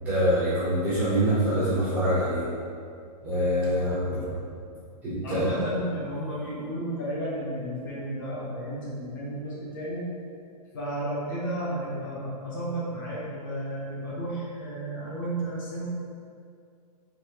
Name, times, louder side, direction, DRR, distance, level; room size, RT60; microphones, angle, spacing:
voice 1, 0.0-2.4 3.2-4.3 5.0-5.5, equal, 5° right, -13 dB, 0.5 m, -25 dB
voice 2, 5.2-10.1 10.7-15.9, right 1 dB, 30° left, -6 dB, 0.7 m, -33 dB
4.0 x 2.8 x 2.8 m, 2.3 s
hypercardioid pair, 175°, 21 cm